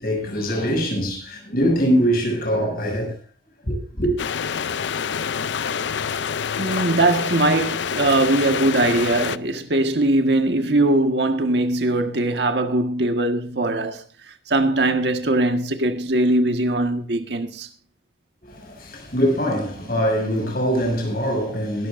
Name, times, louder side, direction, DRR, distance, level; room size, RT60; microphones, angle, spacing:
voice 1, 0.0-3.1 3.6-4.1 18.4-21.9, equal, 55° left, 6.7 m, -23 dB
sound 1, 4.2-9.4, left 7 dB, 80° left, 0.5 m, -26 dB
voice 2, 6.6-14.0 14.5-17.7, right 2 dB, 70° right, 1.6 m, -21 dB
21.0 x 12.5 x 2.6 m
head